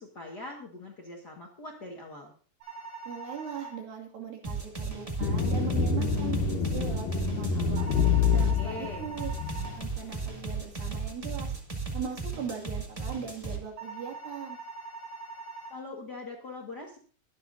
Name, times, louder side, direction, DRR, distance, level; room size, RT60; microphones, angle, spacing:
voice 1, 0.0-2.3 8.6-9.1 15.7-17.0, left 2 dB, 45° left, 0 dB, 1.4 m, -42 dB
sound 1, 2.6-3.8 7.8-9.8 13.8-15.8, right 4 dB, 60° right, 7.2 m, -42 dB
voice 2, 3.1-7.9 8.3-9.3 9.6-11.5 11.9-14.6, right 7 dB, 85° right, 1 dB, 3.9 m, -39 dB
sound 2, 4.4-8.6 9.2-13.6, right 4 dB, 20° right, 1.1 m, -35 dB
sound 3, 5.2-9.8, left 5 dB, 75° left, 2.8 m, -27 dB
22.0 x 9.1 x 2.6 m, 0.41 s
omnidirectional pair, 4.0 m